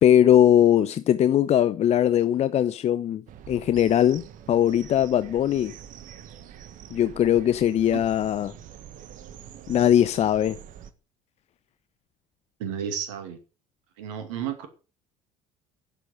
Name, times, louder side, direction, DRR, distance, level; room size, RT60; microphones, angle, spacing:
voice 1, 0.0-3.2 3.5-4.2 4.5-5.7 6.9-8.5 9.7-10.6, left 10 dB, 40° left, 0.7 m, -20 dB
sound 1, 3.3-10.9, right 9 dB, 50° right, 1.4 m, -45 dB
voice 2, 12.6-13.4 14.0-14.7, right 8 dB, 70° right, 2.4 m, -32 dB
11.0 x 8.1 x 7.8 m
figure-of-eight pair, 60°, 17 cm